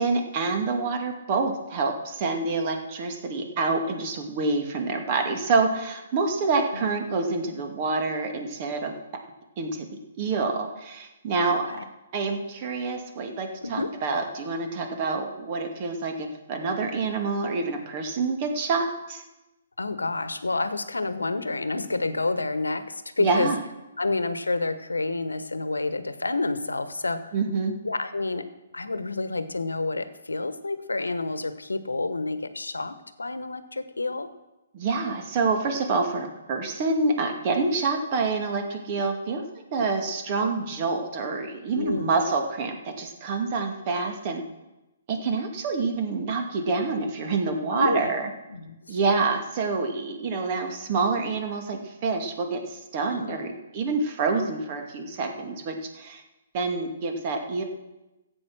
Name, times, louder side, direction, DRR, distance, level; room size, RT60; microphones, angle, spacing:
voice 1, 0.0-8.9 9.6-9.9 10.2-11.7 12.1-19.2 23.2-23.6 27.3-27.8 34.7-39.4 39.7-44.4 45.1-48.3 48.9-56.2 56.5-57.6, right 4 dB, 40° right, 4 dB, 2.3 m, -27 dB
voice 2, 11.4-11.8 13.6-13.9 19.8-23.5 24.0-27.3 27.8-28.5 28.7-34.3 41.7-42.1 47.7-48.1 48.5-49.0 53.0-53.5, left 3 dB, 85° left, 12 dB, 1.1 m, -29 dB
15.0 x 8.4 x 6.2 m, 1.0 s
figure-of-eight pair, 130°, 0 cm